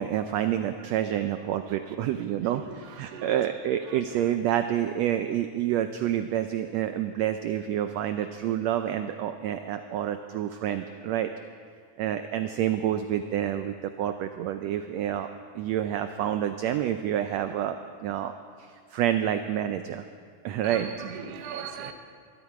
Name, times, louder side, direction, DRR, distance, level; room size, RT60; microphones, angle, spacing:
voice 1, 0.0-11.3 12.0-17.8 18.0-18.3 18.6-20.0 20.4-20.9 21.8-21.9, right 11 dB, 85° right, 8 dB, 1.5 m, -28 dB
voice 2, 2.4-3.5 3.9-4.2 20.6-21.9, right 7 dB, 60° right, 6 dB, 1.8 m, -39 dB
22.5 x 12.5 x 4.8 m, 2.1 s
omnidirectional pair, 3.7 m